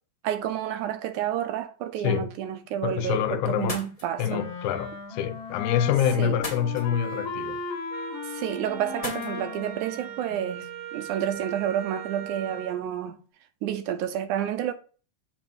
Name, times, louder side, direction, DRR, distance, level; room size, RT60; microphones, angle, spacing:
voice 1, 0.2-4.4 6.2-6.4 8.2-13.2 13.6-14.7, right 10 dB, 85° right, 2.2 m, -30 dB
voice 2, 2.8-3.8 4.2-7.6, left 9 dB, 85° left, 2.2 m, -26 dB
sound 1, 3.5-11.9, left 2 dB, 25° left, 0.8 m, -44 dB
Wind instrument woodwind instrument, 4.2-10.8, left 4 dB, 60° left, 2.0 m, -37 dB
Wind instrument woodwind instrument 2, 7.9-12.8, right 11 dB, 70° right, 1.8 m, -40 dB
7.6 x 3.1 x 5.2 m
omnidirectional pair, 3.4 m